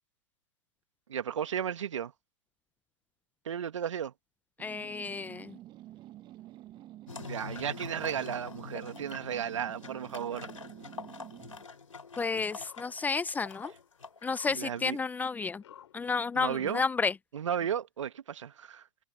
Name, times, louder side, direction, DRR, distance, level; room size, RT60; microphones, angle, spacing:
voice 1, 1.1-2.1 3.5-4.1 7.2-10.5 14.5-15.0 16.3-16.8 17.3-18.8, right 8 dB, 70° right, 2.0 m, -34 dB
voice 2, 4.6-5.6 12.2-13.7 14.2-15.6 15.9-17.1, left 4 dB, 10° left, 0.7 m, -31 dB
sound 1, 4.6-11.6, right 14 dB, 30° right, 1.5 m, -49 dB
sound 2, 7.1-15.0, left 4 dB, 85° left, 3.8 m, -46 dB
sound 3, 11.2-16.5, left 10 dB, 60° left, 4.2 m, -58 dB
figure-of-eight pair, 115°, 16 cm